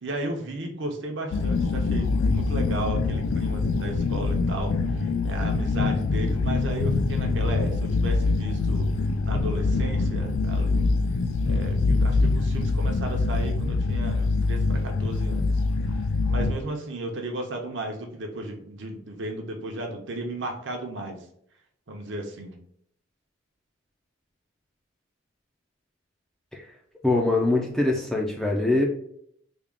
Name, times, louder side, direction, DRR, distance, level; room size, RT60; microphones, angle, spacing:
voice 1, 0.0-8.9 9.2-10.9 11.4-15.6 15.9-21.2 21.9-22.5, right 1 dB, 60° right, 3 dB, 0.7 m, -35 dB
sound 1, 1.3-16.5, left 3 dB, 75° left, 0.3 m, -24 dB
voice 2, 27.0-28.8, left 2 dB, ahead, -1 dB, 0.4 m, -23 dB
3.5 x 2.3 x 3.5 m, 0.68 s
head